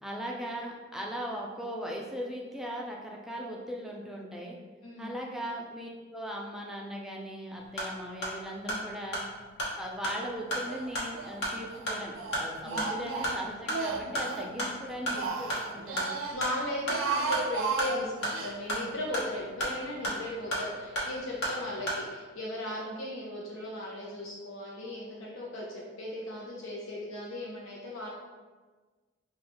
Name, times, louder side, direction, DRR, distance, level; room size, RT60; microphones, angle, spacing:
voice 1, 0.0-4.6 5.0-9.2 9.8-16.2, equal, ahead, -2 dB, 0.4 m, -39 dB
voice 2, 4.8-5.2 8.6-8.8 12.6-12.9 14.5-14.7 16.3-28.1, left 1 dB, 80° left, -4 dB, 0.6 m, -37 dB
sound 1, 7.6-22.1, equal, 55° left, 1.0 m, -35 dB
Speech, 10.7-11.4 11.7-14.5 14.9-16.4 16.8-18.5, right 4 dB, 80° right, 0.5 m, -34 dB
5.1 x 2.3 x 2.9 m, 1.4 s
head